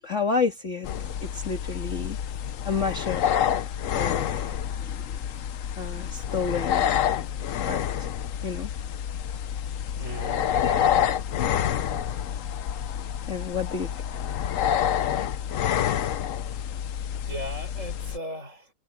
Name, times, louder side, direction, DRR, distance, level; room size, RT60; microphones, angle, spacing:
voice 1, 0.0-0.9 1.2-2.2 2.6-3.3 3.9-6.9 7.6-8.1 8.4-8.7 9.2-9.3 10.6-10.9 11.4-11.5 11.8-12.1 12.8-12.9 13.2-14.4, left 5 dB, 45° left, 2.1 m, -31 dB
sound 1, 0.8-18.2, left 9 dB, 60° left, 1.0 m, -28 dB
voice 2, 9.9-11.1 17.2-18.7, equal, 40° right, 7.4 m, -38 dB
omnidirectional pair, 1.9 m